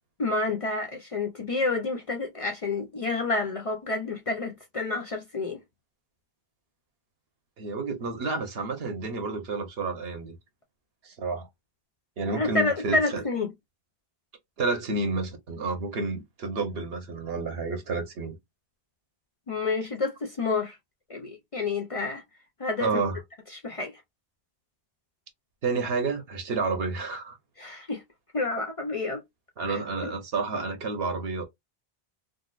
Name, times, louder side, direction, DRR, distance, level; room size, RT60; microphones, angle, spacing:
voice 1, 0.2-5.6 12.3-13.5 19.5-20.8 21.1-22.2 22.6-22.9 23.5-23.9 27.6-28.0 28.3-29.2 29.7-29.8, left 3 dB, 45° left, 0.5 m, -29 dB
voice 2, 7.6-10.3 11.0-11.5 12.2-13.2 14.6-18.3 22.8-23.2 25.6-27.4 29.6-31.4, right 3 dB, 70° right, 1.1 m, -30 dB
3.9 x 2.3 x 2.4 m
omnidirectional pair, 1.1 m